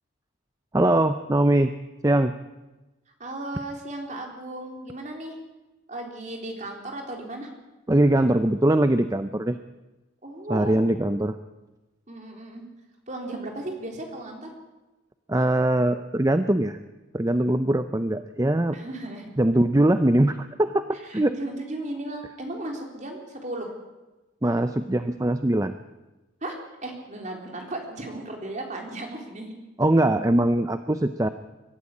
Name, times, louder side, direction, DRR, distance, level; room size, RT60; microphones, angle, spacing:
voice 1, 0.7-1.7 2.0-2.3 7.9-9.6 10.5-11.4 15.3-16.8 17.1-18.8 19.4-20.9 21.1-21.4 24.4-25.7 29.8-31.3, right 1 dB, 15° right, 10 dB, 0.6 m, -21 dB
voice 2, 3.2-5.4 5.9-7.5 10.2-10.7 12.1-12.6 13.1-14.5 18.7-19.3 21.1-23.8 26.4-26.6 26.8-29.6, right 1 dB, 35° right, 2 dB, 3.9 m, -35 dB
23.5 x 12.5 x 9.9 m, 1.1 s
head